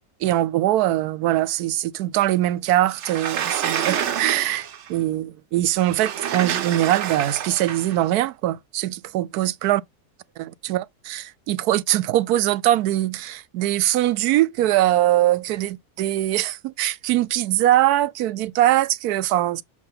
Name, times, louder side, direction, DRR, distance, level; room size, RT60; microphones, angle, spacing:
voice 1, 0.2-9.8 10.4-19.6, right 14 dB, 80° right, 1.1 m, -22 dB
Sliding door, 2.9-4.9 5.8-8.0, right 9 dB, 55° right, 0.9 m, -28 dB
7.2 x 2.9 x 5.6 m
omnidirectional pair, 1.6 m